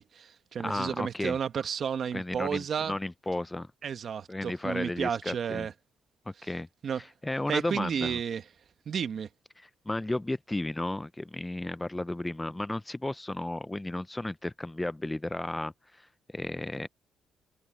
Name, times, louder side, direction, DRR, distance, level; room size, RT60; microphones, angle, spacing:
voice 1, 0.0-3.0 3.8-5.7 6.8-7.0 7.5-8.4 8.8-9.3, right 7 dB, 55° right, 1.4 m, -32 dB
voice 2, 0.6-1.4 2.1-3.7 4.3-5.7 6.3-6.7 7.2-8.2 9.6-16.9, left 2 dB, 10° left, 0.5 m, -34 dB
cardioid pair, 90°, 0 cm